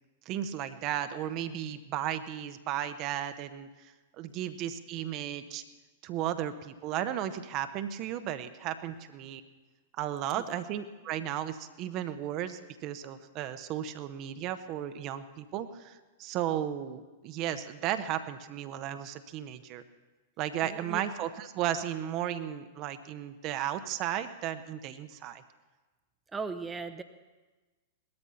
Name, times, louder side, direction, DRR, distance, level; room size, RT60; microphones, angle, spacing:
voice 1, 0.2-5.6 6.0-9.4 10.0-19.8 20.4-25.4, right 11 dB, 35° right, 10 dB, 1.0 m, -35 dB
voice 2, 26.3-27.0, right 4 dB, 15° right, 8 dB, 0.9 m, -37 dB
19.0 x 13.0 x 5.7 m, 1.2 s
figure-of-eight pair, 100°, 0 cm